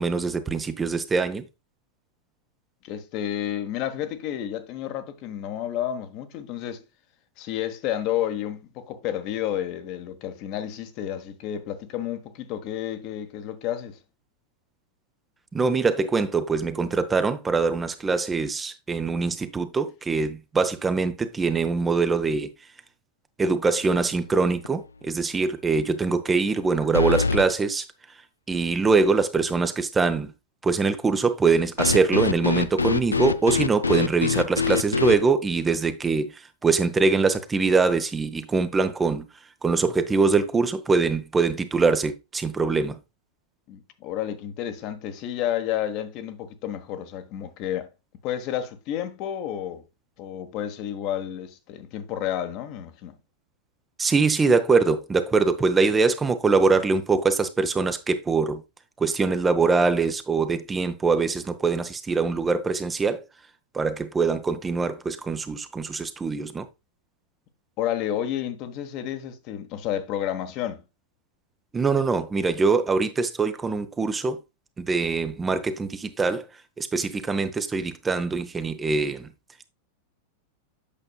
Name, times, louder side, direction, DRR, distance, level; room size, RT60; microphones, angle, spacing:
voice 1, 0.0-1.5 15.5-22.5 23.4-27.9 28.5-30.3 30.6-39.3 39.6-43.0 54.0-58.6 59.0-63.2 63.7-66.7 71.7-74.4 74.8-76.5 76.8-79.3, right 4 dB, 15° right, 0.8 m, -23 dB
voice 2, 2.8-6.8 7.4-14.0 43.7-47.9 48.2-49.8 50.2-53.2 67.8-70.8, left 11 dB, 40° left, 1.2 m, -31 dB
sound 1, 23.9-24.3 24.6-24.7 26.9-27.5 31.8-35.2, left 4 dB, 80° left, 0.4 m, -24 dB
8.6 x 6.5 x 2.3 m
figure-of-eight pair, 90°, 0 cm